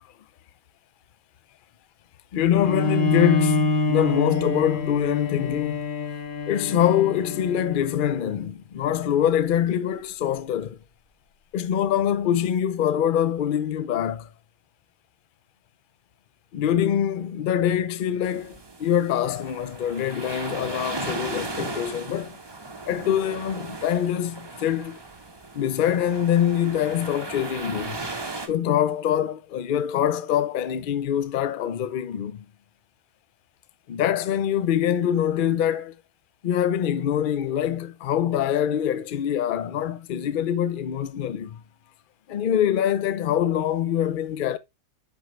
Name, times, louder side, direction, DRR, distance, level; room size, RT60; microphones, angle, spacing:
voice 1, 2.3-5.9 6.5-10.8 11.5-14.3 16.5-22.4 22.9-25.0 25.5-28.0 28.5-32.5 33.9-35.9 36.4-41.6 42.3-44.6, left 10 dB, 55° left, 0.6 m, -24 dB
Bowed string instrument, 2.6-8.3, left 3 dB, 85° left, 2.1 m, -26 dB
sound 1, 18.2-28.5, right 3 dB, 20° right, 0.8 m, -36 dB
7.3 x 5.1 x 3.1 m
omnidirectional pair, 1.5 m